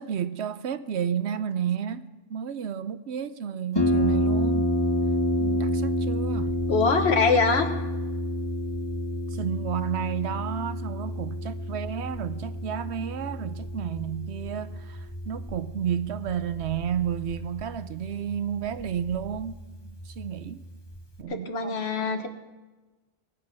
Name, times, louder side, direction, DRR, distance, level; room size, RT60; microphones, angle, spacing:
voice 1, 0.0-4.7 5.4-6.6 9.3-20.7 21.2-21.9, right 8 dB, 80° right, 1.0 m, -32 dB
Harp, 3.8-21.2, left 1 dB, 25° left, 1.2 m, -29 dB
voice 2, 6.7-7.7 21.3-22.3, left 4 dB, 70° left, 1.5 m, -23 dB
19.0 x 8.4 x 6.0 m
omnidirectional pair, 1.1 m